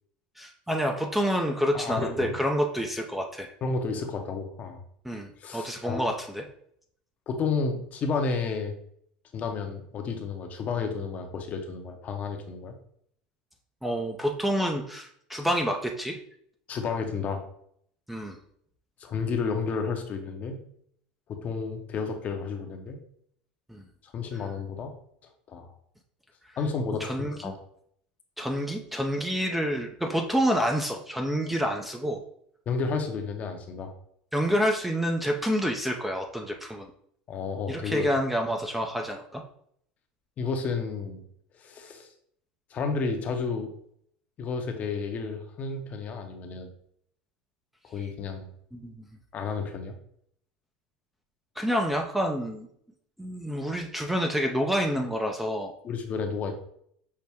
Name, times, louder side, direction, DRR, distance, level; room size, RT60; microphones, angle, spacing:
voice 1, 0.4-3.5 5.0-6.4 13.8-16.2 18.1-18.4 23.7-23.8 27.0-27.5 28.4-32.2 34.3-36.9 37.7-39.4 48.7-48.9 51.6-52.7 53.2-55.7, equal, 5° right, 2 dB, 0.5 m, -28 dB
voice 2, 1.7-2.4 3.6-4.8 5.4-6.0 7.3-8.7 9.3-12.7 16.7-17.4 19.0-20.6 21.3-23.0 24.1-24.9 25.5-25.7 26.6-27.1 27.4-27.6 32.7-33.9 37.3-38.1 40.4-41.2 41.5-42.1 42.7-43.7 44.4-46.7 47.8-48.5 49.3-49.9 55.8-56.6, left 4 dB, 40° left, 5 dB, 0.7 m, -31 dB
5.6 x 2.1 x 3.4 m, 0.66 s
supercardioid pair, 105°, 4 cm